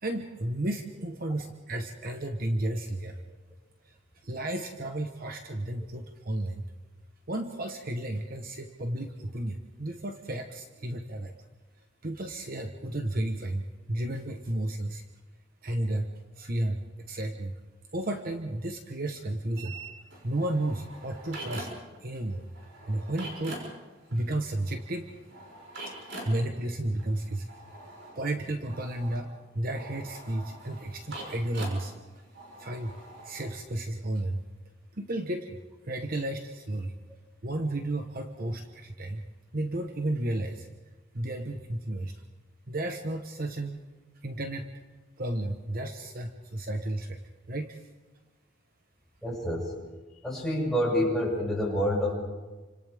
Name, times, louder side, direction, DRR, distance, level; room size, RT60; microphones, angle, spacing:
voice 1, 0.0-3.2 3.8-3.9 4.2-6.6 7.3-11.3 12.0-13.6 13.9-15.0 15.6-16.1 16.3-17.6 17.9-19.7 20.2-21.7 22.0-22.4 22.9-23.7 24.1-25.1 26.0-27.5 28.1-31.9 32.6-32.9 33.2-34.4 34.9-35.6 35.8-36.9 37.4-39.2 39.5-40.7 41.1-42.1 42.7-43.8 44.2-44.7 45.2-47.2 47.5-47.9, right 1 dB, 45° right, 5 dB, 1.2 m, -32 dB
sound 1, 19.5-22.0 22.2-33.5, right 1 dB, 60° right, 6.4 m, -44 dB
voice 2, 49.2-49.7 50.2-52.1, equal, ahead, -5 dB, 6.7 m, -27 dB
29.5 x 26.0 x 3.6 m, 1.2 s
head